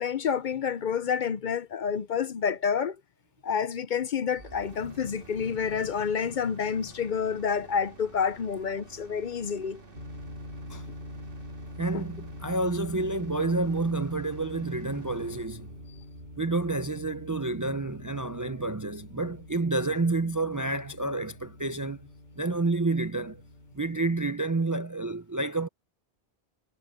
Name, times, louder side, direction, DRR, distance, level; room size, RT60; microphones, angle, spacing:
voice 1, 0.0-3.0 3.4-9.8, left 7 dB, 55° left, 0.7 m, -29 dB
sound 1, 4.3-18.3, right 3 dB, 60° right, 2.5 m, -51 dB
sound 2, 9.9-24.4, left 1 dB, 80° right, 2.4 m, -45 dB
voice 2, 11.8-15.7 16.4-22.1 22.4-23.4 23.7-25.7, right 2 dB, 25° right, 0.4 m, -29 dB
omnidirectional pair, 1.0 m